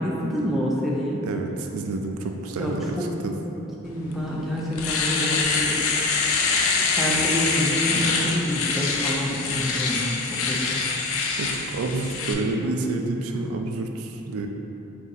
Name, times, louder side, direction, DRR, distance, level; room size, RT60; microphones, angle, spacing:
voice 1, 0.0-1.3 2.6-3.1 3.4-5.8 6.9-10.8 12.6-12.8 13.3-13.5, equal, ahead, -5 dB, 0.4 m, -28 dB
voice 2, 1.2-3.0 3.2-3.3 11.4-14.5, right 3 dB, 85° right, 3 dB, 0.4 m, -29 dB
Domestic sounds home sounds, 4.1-4.2 4.6-12.3, left 4 dB, 75° left, 0.4 m, -25 dB
4.1 x 2.6 x 3.9 m, 2.9 s
head